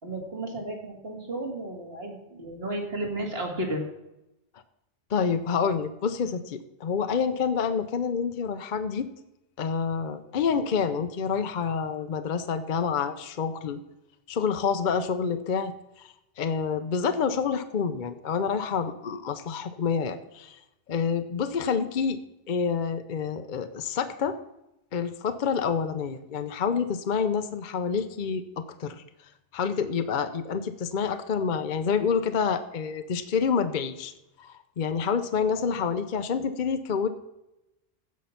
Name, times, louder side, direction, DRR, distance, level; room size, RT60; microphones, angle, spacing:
voice 1, 0.0-3.9, right 1 dB, 55° right, 1 dB, 2.4 m, -33 dB
voice 2, 5.1-9.1 9.6-13.8 14.3-20.6 20.9-22.2 22.5-24.4 24.9-29.0 29.5-34.1 34.4-37.1, left 6 dB, 50° left, 9 dB, 0.7 m, -28 dB
15.5 x 5.7 x 5.8 m, 0.90 s
omnidirectional pair, 1.2 m